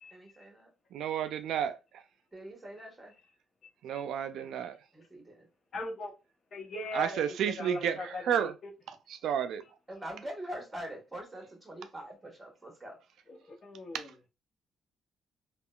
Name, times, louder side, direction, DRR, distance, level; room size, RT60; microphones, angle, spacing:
voice 1, 0.1-0.7 2.3-3.1 4.4-4.5 4.9-5.5 9.9-13.0, right 1 dB, 15° right, 1.3 m, -44 dB
voice 2, 0.9-1.8 3.8-4.8 6.9-8.5 8.9-9.6 13.9-14.1, right 9 dB, 75° right, 0.3 m, -31 dB
voice 3, 5.7-6.1 6.5-8.5 13.3-14.1, left 2 dB, 50° left, 0.9 m, -39 dB
3.6 x 2.3 x 2.3 m
cardioid pair, 90°, 0 cm